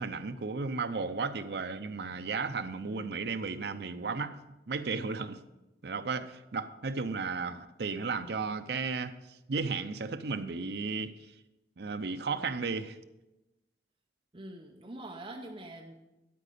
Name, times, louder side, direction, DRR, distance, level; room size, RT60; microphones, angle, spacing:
voice 1, 0.0-4.4 4.7-5.4 5.8-11.1 11.8-13.0, right 4 dB, 65° right, 0.6 m, -34 dB
voice 2, 14.3-16.0, right 1 dB, 30° right, 0.7 m, -44 dB
12.0 x 5.0 x 6.7 m
head